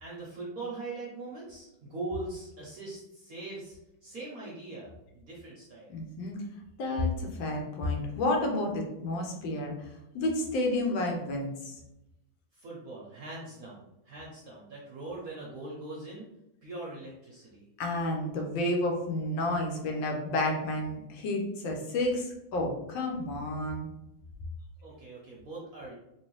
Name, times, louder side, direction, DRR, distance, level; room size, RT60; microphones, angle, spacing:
voice 1, 0.0-5.9 12.5-16.3 16.6-17.7 24.8-25.9, right 2 dB, 60° right, -4 dB, 0.9 m, -41 dB
voice 2, 5.9-6.4 6.8-9.9 10.1-11.7 17.8-23.9, left 1 dB, 75° left, 1 dB, 1.4 m, -30 dB
3.1 x 3.1 x 3.0 m, 0.89 s
omnidirectional pair, 2.2 m